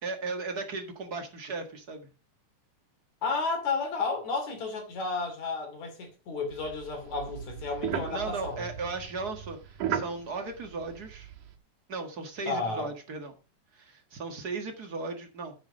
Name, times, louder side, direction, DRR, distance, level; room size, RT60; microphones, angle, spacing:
voice 1, 0.0-2.1 8.1-11.3 11.9-13.3 13.7-15.5, right 3 dB, 40° right, 1.7 m, -36 dB
voice 2, 3.2-8.7 12.5-12.9, left 4 dB, 65° left, 4.0 m, -32 dB
sound 1, 6.5-11.5, right 8 dB, 90° right, 2.9 m, -37 dB
9.5 x 8.2 x 5.1 m
omnidirectional pair, 3.5 m